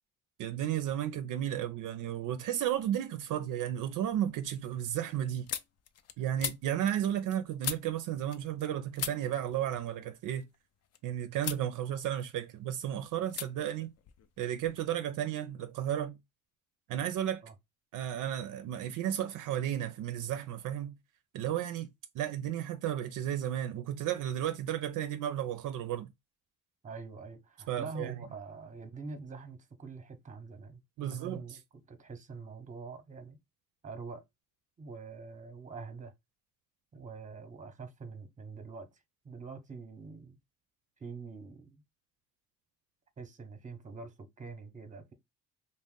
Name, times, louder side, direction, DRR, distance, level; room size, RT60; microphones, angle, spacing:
voice 1, 0.4-5.5 6.2-10.5 11.0-13.9 14.4-16.2 16.9-17.4 17.9-21.0 21.3-21.9 22.1-26.1 27.7-28.1 31.0-31.6, right 11 dB, 65° right, 0.5 m, -33 dB
sound 1, 2.7-3.3 3.6-8.7 8.9-11.0 11.4-11.7 12.0-12.8 13.3-13.5 13.7-14.8, left 9 dB, 50° left, 0.4 m, -42 dB
voice 2, 26.8-31.6 31.9-33.4 33.8-34.2 34.8-36.1 36.9-38.9 39.2-40.4 41.0-41.8 43.2-45.1, right 4 dB, 20° right, 0.7 m, -45 dB
2.5 x 2.1 x 3.5 m
cardioid pair, 80°, 33 cm